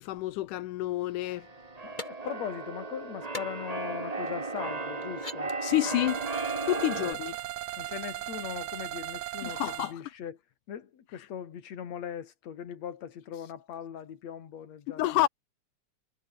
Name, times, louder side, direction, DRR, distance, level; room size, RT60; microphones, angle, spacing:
voice 1, 0.0-1.5 5.6-6.2 6.7-7.4 9.4-10.0 11.2-11.3 14.9-15.3, left 15 dB, 85° left, 2.4 m, -29 dB
Keyboard (musical), 1.2-7.1, right 3 dB, 50° right, 0.4 m, -35 dB
voice 2, 1.8-5.5 7.8-10.4 10.7-15.2, left 8 dB, 60° left, 3.4 m, -40 dB
sound 1, 2.0-2.1 3.3-3.5 4.3-4.4 5.0-5.4 7.1-7.5, left 2 dB, 15° left, 4.0 m, -40 dB
sound 2, 6.1-9.9, right 16 dB, 75° right, 1.5 m, -37 dB
omnidirectional pair, 3.6 m